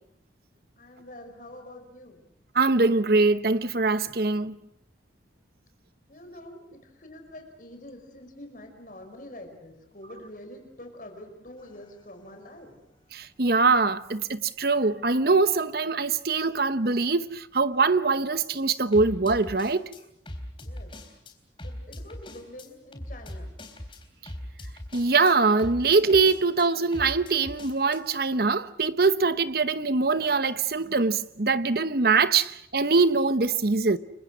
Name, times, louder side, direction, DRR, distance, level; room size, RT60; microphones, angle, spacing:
voice 1, 0.8-2.2 6.1-12.8 20.6-20.9 21.6-23.5, left 1 dB, 45° left, 5.2 m, -46 dB
voice 2, 2.5-4.6 13.1-19.9 24.9-34.0, right 4 dB, 55° right, 1.0 m, -23 dB
sound 1, 11.6-11.9 18.9-21.3 21.6-28.0, left 1 dB, 30° left, 3.6 m, -40 dB
29.5 x 24.5 x 6.3 m
head